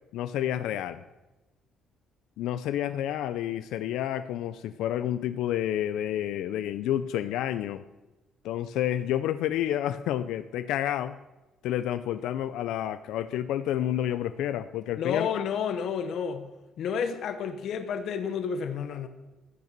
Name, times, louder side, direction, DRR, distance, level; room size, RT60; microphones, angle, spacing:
voice 1, 0.1-1.0 2.4-7.8 8.4-11.1 11.6-15.4, left 11 dB, 90° left, 0.5 m, -29 dB
voice 2, 15.0-16.5 16.8-19.1, left 7 dB, 60° left, 1.0 m, -30 dB
13.5 x 9.4 x 6.7 m
cardioid pair, 145°, 0 cm